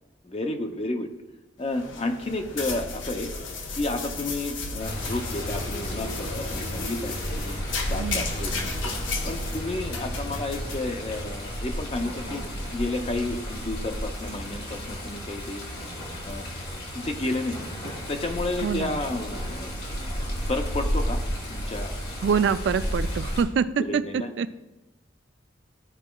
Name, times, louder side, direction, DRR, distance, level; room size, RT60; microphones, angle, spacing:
voice 1, 0.2-1.1 1.6-3.3 3.7-7.6 7.9-8.9 9.3-12.4 12.7-15.7 16.2-16.5 16.9-17.6 17.8-19.7 20.1-21.2 21.5-21.9 22.2-22.4 23.8-24.3, left 2 dB, 30° left, 5 dB, 0.5 m, -31 dB
sound 1, 1.6-11.6, left 3 dB, 85° left, 0.8 m, -34 dB
Water, 4.8-23.4, equal, 55° left, 1.7 m, -33 dB
voice 2, 8.0-8.3 18.6-19.0 22.2-24.5, right 6 dB, 65° right, 13 dB, 0.3 m, -25 dB
12.0 x 4.7 x 2.3 m, 1.0 s
head